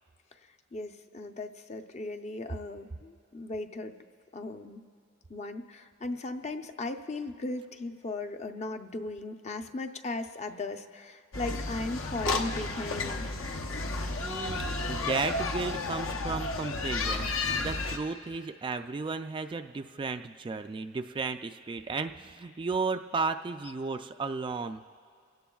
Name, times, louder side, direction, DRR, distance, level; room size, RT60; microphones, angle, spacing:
voice 1, 0.7-4.0 4.3-4.9 5.3-13.3, left 2 dB, 35° left, 6 dB, 0.6 m, -37 dB
sound 1, 11.3-18.0, left 3 dB, 70° left, 0.9 m, -32 dB
voice 2, 14.2-17.3 17.6-24.8, right 4 dB, 25° right, 7 dB, 0.3 m, -34 dB
28.5 x 17.0 x 2.3 m, 2.3 s
head